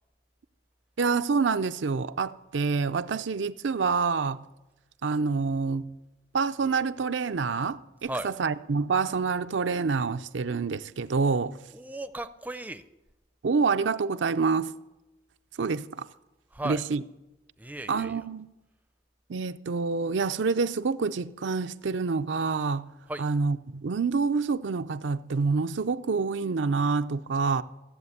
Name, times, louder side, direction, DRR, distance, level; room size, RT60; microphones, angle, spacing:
voice 1, 1.0-4.4 5.0-6.0 6.3-11.6 13.4-14.7 15.6-16.1 16.6-17.0 17.9-18.5 19.3-22.9 23.2-27.6, right 4 dB, 90° right, 0.5 m, -27 dB
voice 2, 11.7-12.8 16.5-16.8 17.6-18.3 23.1-23.2, right 1 dB, 10° right, 0.4 m, -36 dB
15.0 x 7.8 x 8.1 m
head